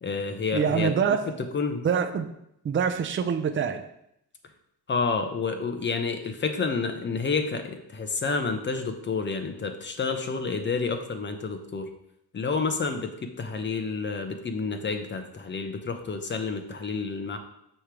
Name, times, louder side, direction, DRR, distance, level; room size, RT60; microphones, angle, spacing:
voice 1, 0.0-1.2 1.5-1.9 4.9-11.9 12.3-17.4, left 4 dB, 30° left, 6 dB, 0.8 m, -29 dB
voice 2, 0.5-1.2 1.8-2.3 2.6-3.8, right 7 dB, 30° right, 6 dB, 0.5 m, -25 dB
6.4 x 3.3 x 5.8 m, 0.77 s
cardioid pair, 125°, 39 cm